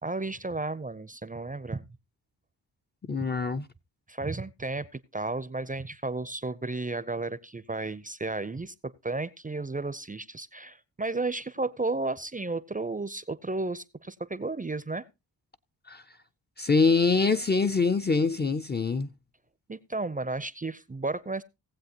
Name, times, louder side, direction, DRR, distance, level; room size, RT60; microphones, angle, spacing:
voice 1, 0.0-1.8 4.1-8.7 9.0-15.0 19.7-21.4, right 3 dB, 20° right, 0.6 m, -33 dB
voice 2, 3.1-3.7 15.9-16.0 16.6-19.1, left 4 dB, 25° left, 0.5 m, -24 dB
18.5 x 7.6 x 2.9 m
supercardioid pair, 50°, 46 cm